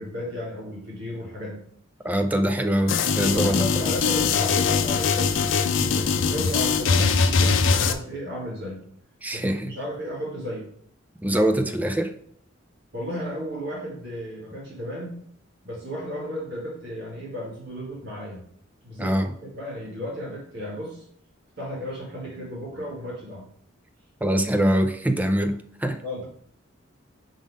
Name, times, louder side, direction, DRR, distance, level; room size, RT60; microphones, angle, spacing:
voice 1, 0.0-1.6 3.3-8.8 9.3-10.6 12.9-15.2 15.6-18.4 18.8-19.1 19.4-21.1 21.6-23.4 26.0-26.2, equal, 60° right, -5 dB, 2.1 m, -34 dB
voice 2, 2.0-3.6 9.2-9.7 11.2-12.1 19.0-19.3 24.2-26.0, equal, 10° right, 7 dB, 0.4 m, -23 dB
sound 1, 2.9-7.9, left 5 dB, 70° left, 0.5 m, -22 dB
5.3 x 3.7 x 4.9 m, 0.65 s
head